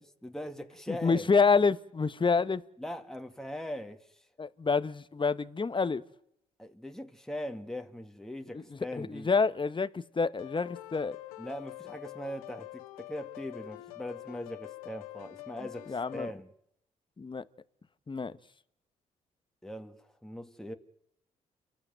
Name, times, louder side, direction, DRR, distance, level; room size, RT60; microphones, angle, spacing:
voice 1, 0.2-1.3 2.8-4.2 6.6-9.3 11.4-16.5 19.6-20.7, left 1 dB, 5° left, 2.3 m, -41 dB
voice 2, 0.9-2.6 4.4-6.0 8.5-8.6 9.0-11.2 15.9-16.3 17.2-17.4 18.1-18.3, left 4 dB, 25° left, 1.2 m, -27 dB
sound 1, 10.4-16.3, left 19 dB, 85° left, 0.9 m, -45 dB
29.5 x 13.0 x 9.3 m
hypercardioid pair, 45°, 18 cm